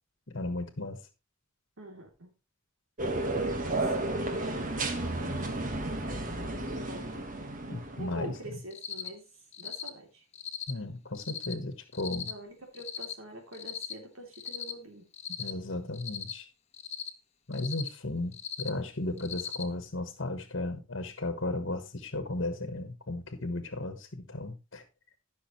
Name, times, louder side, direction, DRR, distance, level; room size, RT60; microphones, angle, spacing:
voice 1, 0.3-1.0 7.7-8.3 10.7-12.3 15.4-16.5 17.5-24.8, left 2 dB, 60° left, 1.4 m, -35 dB
voice 2, 1.8-2.3 3.4-4.0 4.4-5.5 6.5-7.3 8.0-9.2 9.6-10.2 12.2-15.0, right 1 dB, 75° right, 3.1 m, -45 dB
sound 1, 3.0-8.4, right 2 dB, 40° right, 1.5 m, -32 dB
Cricket, 8.7-9.1 9.5-9.9 10.3-10.7 11.2-11.5 11.9-12.3 12.7-13.1 13.5-13.9 14.3-14.7 15.1-15.5 15.9-16.3 16.7-17.1 17.5-17.9 18.3-18.7 19.2-19.6, left 8 dB, 30° left, 1.2 m, -38 dB
15.0 x 6.4 x 3.1 m
head